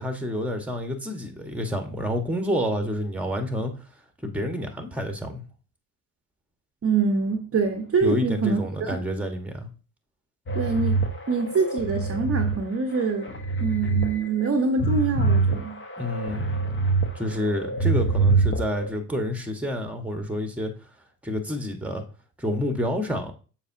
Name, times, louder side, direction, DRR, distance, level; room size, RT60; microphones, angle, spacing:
voice 1, 0.0-3.7 4.2-5.4 8.0-9.7 16.0-16.6 17.1-20.7 21.2-22.0 22.4-23.3, equal, 5° right, 1.5 m, -28 dB
voice 2, 6.8-9.0 10.5-11.0 11.3-13.3 13.6-15.7, right 4 dB, 35° right, 1.0 m, -25 dB
sound 1, 10.5-12.5 13.0-14.1 14.4-17.1 17.4-18.9, right 3 dB, 25° left, 1.5 m, -24 dB
7.1 x 4.9 x 2.8 m
hypercardioid pair, 55°, 43 cm